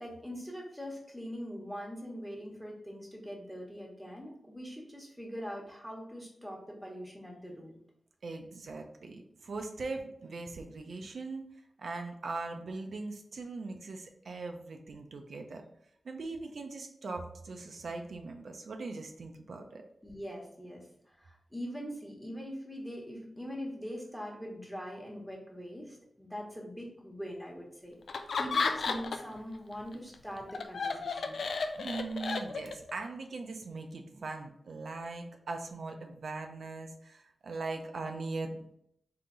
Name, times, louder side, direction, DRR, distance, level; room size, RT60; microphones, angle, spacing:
voice 1, 0.0-7.8 20.0-28.0 28.4-31.4, equal, ahead, -1 dB, 1.1 m, -42 dB
voice 2, 8.2-11.4 11.8-15.6 16.0-19.8 31.8-38.8, right 3 dB, 80° right, 4 dB, 0.5 m, -40 dB
Laughter, 28.1-29.4 29.7-32.9, left 4 dB, 90° left, 0.4 m, -33 dB
3.8 x 2.8 x 3.8 m, 0.71 s
wide cardioid pair, 105°, 0 cm